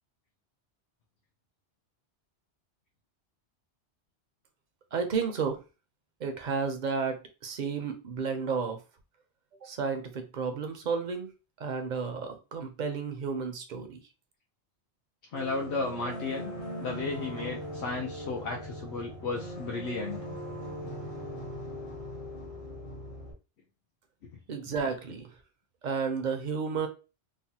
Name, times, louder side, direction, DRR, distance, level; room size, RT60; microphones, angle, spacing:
voice 1, 4.9-5.6 6.2-8.8 9.6-11.3 11.6-14.0 24.5-25.3 25.8-26.9, right 5 dB, 55° right, 0.6 m, -32 dB
voice 2, 15.3-16.5 16.8-20.2, left 3 dB, 75° left, 0.9 m, -34 dB
sound 1, 15.3-23.3, equal, 50° left, 1.1 m, -40 dB
3.2 x 2.1 x 2.7 m
omnidirectional pair, 1.2 m